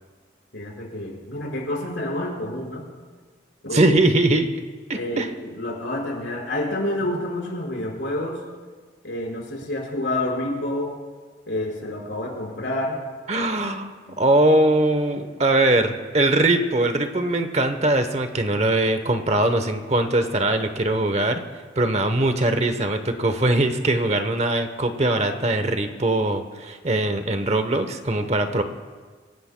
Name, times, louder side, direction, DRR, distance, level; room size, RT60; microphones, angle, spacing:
voice 1, 0.5-2.8 3.6-3.9 4.9-8.4 9.0-10.9 11.5-13.0 13.3-13.6 14.1-14.2, left 1 dB, 70° left, -2 dB, 5.0 m, -28 dB
voice 2, 3.7-4.5 4.9-5.3 13.3-13.9 14.2-21.4 21.8-28.6, right 2 dB, 35° right, 8 dB, 0.9 m, -21 dB
27.0 x 16.0 x 2.2 m, 1.4 s
head